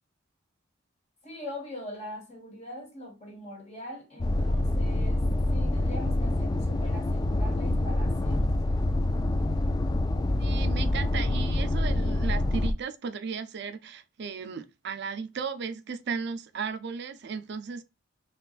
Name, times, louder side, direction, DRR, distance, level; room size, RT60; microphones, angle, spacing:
voice 1, 1.2-8.5, left 1 dB, 35° left, 1.4 m, -42 dB
sound 1, 4.2-12.7, left 1 dB, 20° left, 0.3 m, -26 dB
voice 2, 10.4-17.8, right 5 dB, 60° right, 0.5 m, -35 dB
4.6 x 3.0 x 2.4 m
head